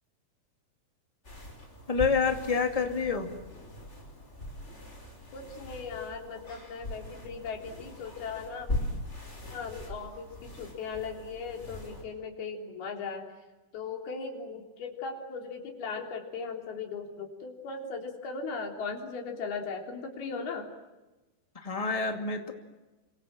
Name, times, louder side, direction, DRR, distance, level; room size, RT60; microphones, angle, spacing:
sound 1, 1.2-12.0, left 1 dB, 15° left, 5.4 m, -40 dB
voice 1, 1.9-3.3 21.6-22.5, left 5 dB, 30° left, 4 dB, 0.6 m, -27 dB
voice 2, 5.3-8.7 9.5-13.3 13.7-20.7, left 5 dB, 60° left, 2 dB, 5.3 m, -38 dB
29.5 x 25.5 x 7.6 m, 1.1 s
omnidirectional pair, 5.1 m